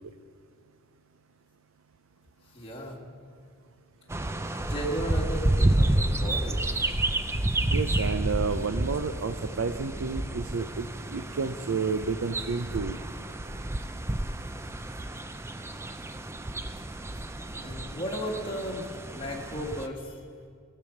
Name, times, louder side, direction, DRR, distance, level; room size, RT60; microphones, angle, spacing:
voice 1, 2.5-3.0 4.6-6.8 17.6-20.2, equal, 25° left, -1 dB, 1.7 m, -35 dB
sound 1, 4.1-19.9, right 1 dB, 10° right, 0.4 m, -30 dB
voice 2, 7.7-13.0, right 5 dB, 65° right, 9 dB, 0.5 m, -30 dB
18.0 x 6.8 x 7.2 m, 2.2 s
head